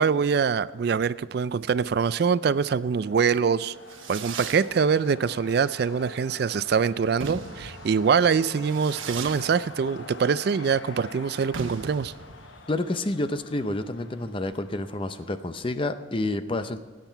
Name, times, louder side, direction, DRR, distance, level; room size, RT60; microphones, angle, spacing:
voice 1, 0.0-3.7 4.1-12.1, right 6 dB, 55° right, 16 dB, 0.3 m, -24 dB
sound 1, 1.7-15.5, left 3 dB, 75° left, 1.0 m, -47 dB
Fireworks, 3.6-15.7, right 5 dB, 85° right, 1.1 m, -41 dB
sound 2, 5.5-10.7, right 1 dB, 30° right, 2.0 m, -50 dB
voice 2, 12.7-16.8, left 2 dB, 25° left, 10 dB, 0.6 m, -29 dB
19.0 x 9.0 x 4.5 m, 1.5 s
head